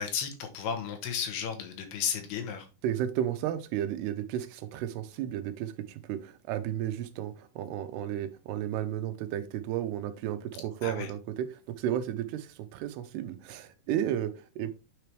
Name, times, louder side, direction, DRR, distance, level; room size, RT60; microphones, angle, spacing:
voice 1, 0.0-2.7 10.8-11.1, left 7 dB, 80° left, 5 dB, 3.2 m, -33 dB
voice 2, 2.8-14.7, right 11 dB, 85° right, 10 dB, 2.8 m, -33 dB
9.3 x 4.6 x 3.4 m, 0.30 s
omnidirectional pair, 4.6 m